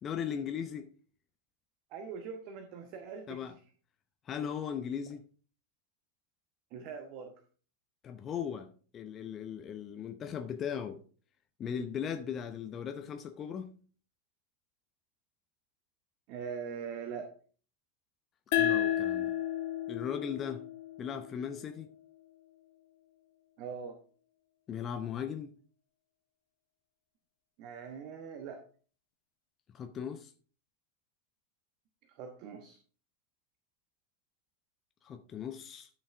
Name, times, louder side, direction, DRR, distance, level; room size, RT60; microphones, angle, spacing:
voice 1, 0.0-0.9 3.3-3.6 4.3-5.2 8.0-8.7 8.9-11.0 11.6-13.7 18.6-19.3 19.9-20.6 21.0-21.9 24.7-25.5 29.7-30.3 35.0-35.9, left 8 dB, 25° left, 0.7 m, -38 dB
voice 2, 1.9-3.5 6.7-7.4 16.3-17.3 23.6-24.0 27.6-28.6 32.1-32.8, right 6 dB, 40° right, 1.1 m, -42 dB
sound 1, 18.5-21.7, left 11 dB, 50° left, 1.1 m, -32 dB
12.0 x 6.5 x 3.4 m
figure-of-eight pair, 90°, 0 cm